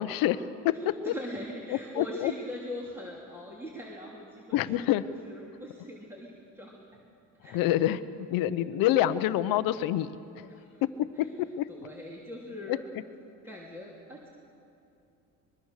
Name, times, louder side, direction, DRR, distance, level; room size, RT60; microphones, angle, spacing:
voice 1, 0.0-1.1 1.7-2.3 4.5-5.0 7.5-10.5 10.8-10.9 11.2-11.3 11.6-11.7 12.7-12.8, left 13 dB, 80° left, 13 dB, 1.0 m, -27 dB
voice 2, 1.0-7.0 7.4-7.6 10.5-10.8 11.2-11.3 11.7-12.8 13.4-14.3, left 1 dB, 5° right, -3 dB, 2.9 m, -41 dB
24.0 x 22.0 x 6.6 m, 2.7 s
cardioid pair, 130°, 34 cm